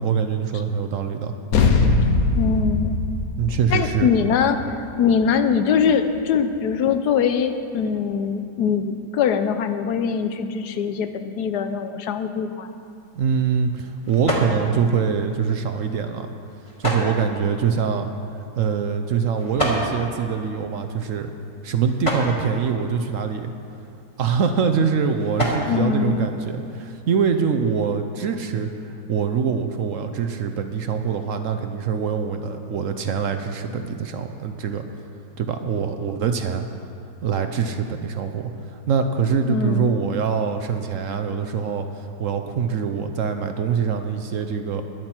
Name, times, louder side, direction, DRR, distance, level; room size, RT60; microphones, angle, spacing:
voice 1, 0.0-1.3 3.4-4.1 13.1-16.3 16.8-18.1 18.6-21.3 21.6-23.5 24.2-34.8 35.4-36.6 37.2-44.8, right 6 dB, 60° right, 7 dB, 0.9 m, -24 dB
sound 1, 1.5-6.3, left 3 dB, 65° left, 1.3 m, -22 dB
voice 2, 2.3-3.0 3.7-4.6 5.0-12.7 25.7-26.3 39.5-40.0, left 6 dB, 80° left, 9 dB, 1.3 m, -22 dB
sound 2, 12.6-27.0, equal, 20° left, 1.9 m, -32 dB
21.5 x 7.6 x 4.4 m, 2.5 s
omnidirectional pair, 1.7 m